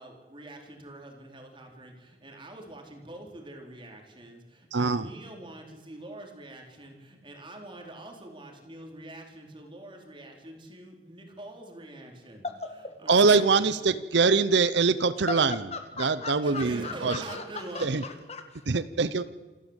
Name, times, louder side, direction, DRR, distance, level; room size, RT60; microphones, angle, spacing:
voice 1, 0.0-12.4 13.0-13.5 16.2-18.0, right 1 dB, 25° right, 2 dB, 3.9 m, -44 dB
voice 2, 4.7-5.0 13.1-15.5 16.0-17.1 17.8-18.0 18.7-19.2, right 4 dB, 70° right, 15 dB, 0.7 m, -23 dB
voice 3, 12.4-12.9 15.3-18.8, left 3 dB, 35° left, 7 dB, 2.0 m, -38 dB
28.0 x 12.5 x 8.1 m, 1.4 s
head